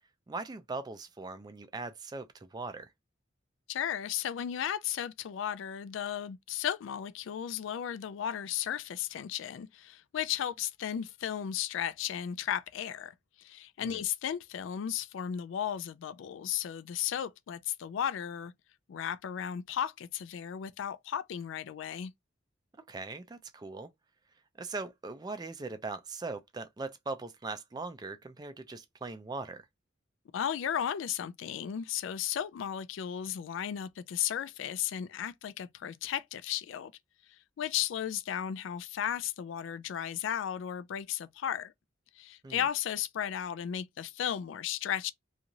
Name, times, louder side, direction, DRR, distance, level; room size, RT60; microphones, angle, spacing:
voice 1, 0.3-2.9 13.8-14.0 22.9-23.9 24.6-29.6 42.4-42.7, right 3 dB, 20° right, 0.3 m, -40 dB
voice 2, 3.7-18.5 18.9-22.1 30.3-36.9 37.3-41.7 42.2-45.1, left 9 dB, 75° left, 0.3 m, -35 dB
2.5 x 2.4 x 2.9 m
head